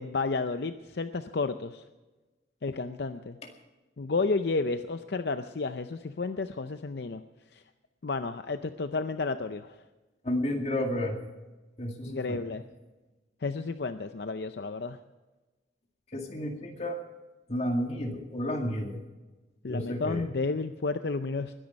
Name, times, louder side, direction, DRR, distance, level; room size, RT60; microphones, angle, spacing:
voice 1, 0.0-1.8 2.6-3.4 4.0-7.2 7.5-7.6 8.0-9.7 12.1-12.6 13.4-15.0 19.6-21.5, left 3 dB, 65° left, 9 dB, 0.6 m, -31 dB
voice 2, 10.2-11.2 11.8-12.4 16.1-17.0 17.5-19.0 19.7-20.2, left 1 dB, 35° left, 2 dB, 2.2 m, -31 dB
21.0 x 10.5 x 5.3 m, 1.2 s
head